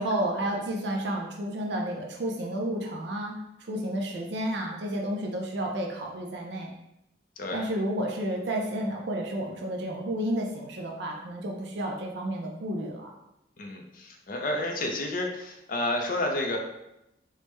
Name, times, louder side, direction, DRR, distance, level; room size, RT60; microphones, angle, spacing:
voice 1, 0.0-6.7 7.5-13.1, right 1 dB, 65° right, 0 dB, 0.5 m, -31 dB
voice 2, 7.4-7.7 13.6-16.6, left 1 dB, 45° left, 2 dB, 0.4 m, -30 dB
3.3 x 2.1 x 3.1 m, 0.85 s
head